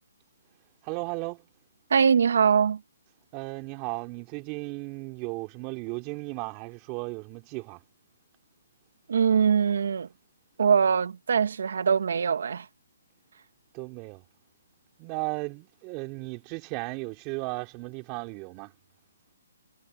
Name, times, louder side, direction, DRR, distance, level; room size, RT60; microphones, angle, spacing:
voice 1, 0.8-1.4 3.3-7.8 13.7-14.2 15.0-18.7, right 26 dB, 25° right, 2.7 m, -35 dB
voice 2, 1.9-2.8 9.1-10.1 10.6-12.7, right 6 dB, 65° right, 1.7 m, -22 dB
hypercardioid pair, 160°, 0 cm